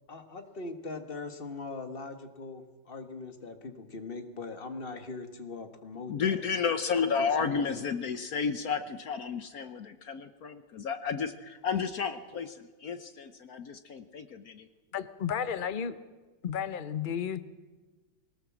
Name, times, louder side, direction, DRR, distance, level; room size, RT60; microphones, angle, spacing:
voice 1, 0.1-6.4 7.0-7.6, left 3 dB, 30° left, 7 dB, 1.5 m, -41 dB
voice 2, 6.1-14.7, left 6 dB, 55° left, 10 dB, 1.2 m, -32 dB
voice 3, 14.9-16.0 16.4-17.4, left 8 dB, 85° left, 13 dB, 0.4 m, -32 dB
21.0 x 18.5 x 7.4 m, 1.2 s
omnidirectional pair, 2.1 m